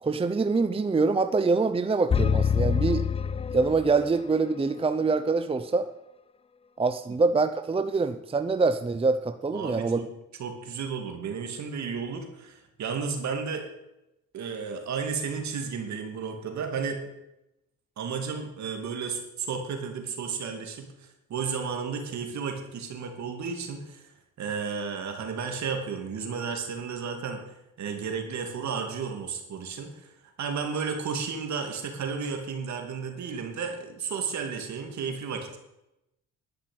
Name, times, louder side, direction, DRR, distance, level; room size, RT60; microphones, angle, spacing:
voice 1, 0.0-3.0 3.5-5.9 6.8-10.0, right 4 dB, 20° right, 9 dB, 0.7 m, -25 dB
sound 1, 2.1-4.2, left 7 dB, 20° left, 0.4 m, -26 dB
voice 2, 9.5-10.1 10.4-13.7 14.3-17.0 18.0-24.1 24.4-30.1 30.4-35.6, right 5 dB, 65° right, 4 dB, 2.5 m, -33 dB
11.5 x 5.9 x 8.8 m, 0.89 s
cardioid pair, 90°, 30 cm